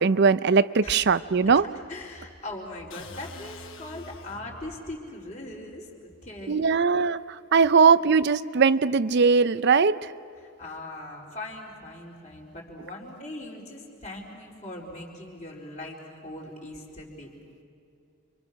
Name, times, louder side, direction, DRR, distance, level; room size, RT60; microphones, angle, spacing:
voice 1, 0.0-1.7 6.5-7.2 7.5-10.0, right 5 dB, 50° right, 15 dB, 0.5 m, -20 dB
voice 2, 0.8-1.2 1.5-6.7 7.0-7.1 10.4-17.3, left 1 dB, 35° left, -1 dB, 4.3 m, -40 dB
sound 1, 2.9-4.8, left 3 dB, 60° left, 1.2 m, -45 dB
29.5 x 25.0 x 6.3 m, 2.6 s
head